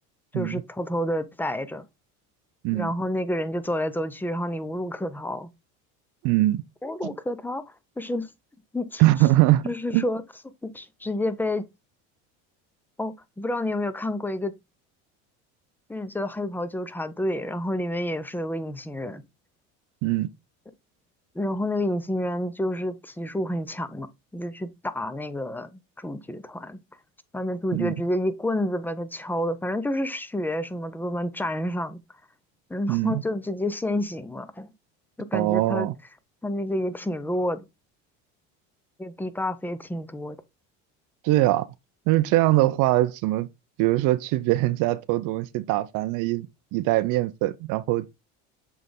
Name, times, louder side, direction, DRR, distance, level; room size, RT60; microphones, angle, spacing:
voice 1, 0.3-1.9 2.7-5.5 6.8-8.3 8.7-9.0 9.6-10.2 10.6-11.6 13.0-14.5 15.9-19.2 21.3-24.1 24.3-26.8 27.3-32.0 32.7-34.7 35.2-35.9 36.4-37.7 39.0-40.4, left 1 dB, 5° left, 0.7 m, -29 dB
voice 2, 6.2-6.6 7.0-7.1 9.0-9.6 9.9-10.0 20.0-20.3 27.7-27.9 32.9-33.2 35.3-35.9 41.2-41.7 42.1-43.5 43.8-46.5 46.7-48.1, right 17 dB, 65° right, 0.6 m, -22 dB
7.5 x 3.4 x 3.8 m
supercardioid pair, 105°, 34 cm